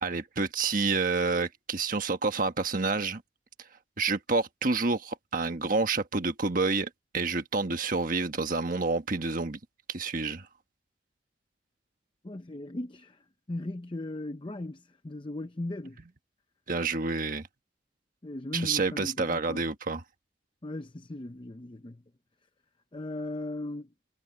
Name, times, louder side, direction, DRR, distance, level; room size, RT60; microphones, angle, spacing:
voice 1, 0.0-3.2 4.0-9.6 9.9-10.5 16.7-17.4 18.5-20.0, right 3 dB, 50° right, 1.3 m, -28 dB
voice 2, 12.2-13.2 13.5-16.0 18.2-19.6 20.6-22.0 22.9-23.9, left 1 dB, 25° left, 0.7 m, -37 dB
head